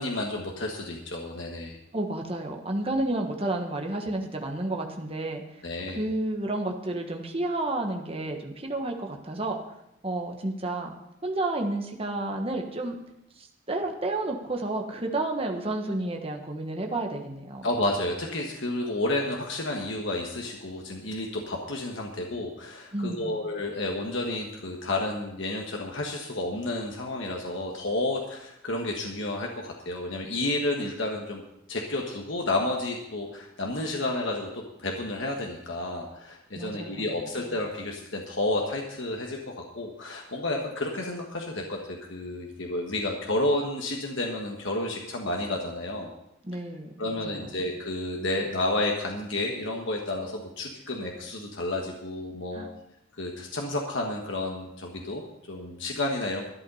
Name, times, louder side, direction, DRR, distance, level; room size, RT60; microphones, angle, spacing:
voice 1, 0.0-1.8 5.6-6.0 17.6-31.4 31.7-41.8 42.1-46.1 47.0-52.7 53.2-55.2 55.5-56.4, left 2 dB, 65° left, 0 dB, 1.6 m, -31 dB
voice 2, 1.9-5.4 5.9-9.6 10.0-10.9 11.2-13.0 13.4-17.7 22.9-23.4 36.5-37.5 46.4-47.7 52.5-52.7, right 2 dB, 25° right, 2 dB, 1.3 m, -31 dB
12.5 x 11.0 x 5.6 m, 0.81 s
head